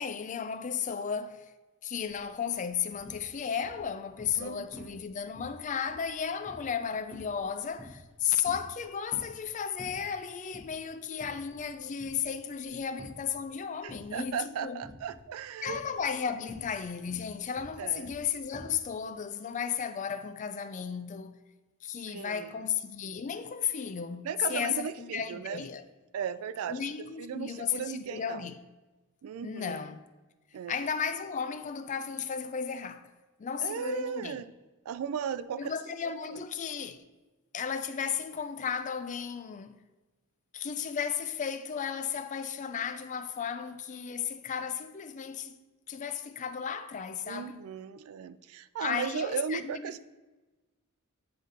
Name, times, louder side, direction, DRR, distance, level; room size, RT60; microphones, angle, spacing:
voice 1, 0.0-1.4 1.8-14.8 15.6-21.4 21.8-25.8 26.7-28.6 29.4-30.0 30.7-33.1 33.4-34.5 35.6-37.0 37.5-39.7 40.5-45.6 45.9-47.6 48.8-50.0, left 7 dB, 35° left, 0.4 m, -34 dB
sound 1, 2.0-2.2 2.5-3.2 3.6-4.5 4.7-5.1 5.4-8.2 8.4-9.4 9.8-10.2 10.5-10.7 11.1-11.7 12.0-13.4 13.9-14.3 14.8-15.3 15.6-18.8, left 1 dB, 10° right, 1.2 m, -49 dB
voice 2, 4.4-4.9 13.8-15.8 17.8-18.1 22.1-22.5 24.2-25.6 26.1-26.8 27.2-28.4 29.2-29.8 30.5-30.7 33.6-34.5 34.9-35.7 36.0-36.1 47.3-50.0, right 7 dB, 70° right, 0.3 m, -36 dB
9.2 x 3.9 x 3.9 m
head